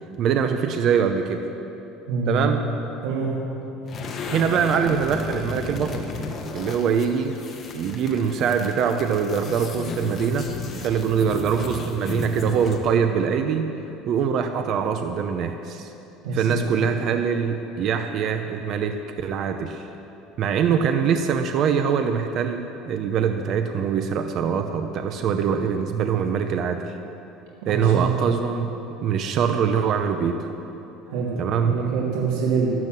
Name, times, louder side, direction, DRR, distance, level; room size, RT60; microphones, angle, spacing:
voice 1, 0.2-1.4 2.3-2.6 4.3-6.1 6.5-7.3 7.7-10.5 10.8-13.7 14.1-15.9 16.3-19.9 20.4-26.9 27.7-28.7 29.0-30.5 31.4-31.7, right 7 dB, 45° right, 6 dB, 0.7 m, -23 dB
voice 2, 2.1-2.6 3.0-3.3 16.2-16.6 27.7-28.1 31.1-31.3 31.6-32.7, right 4 dB, 90° right, -4 dB, 2.6 m, -25 dB
sound 1, 3.9-12.9, left 3 dB, 30° left, 1.4 m, -34 dB
12.5 x 12.0 x 7.6 m, 3.0 s
cardioid pair, 155°, 0 cm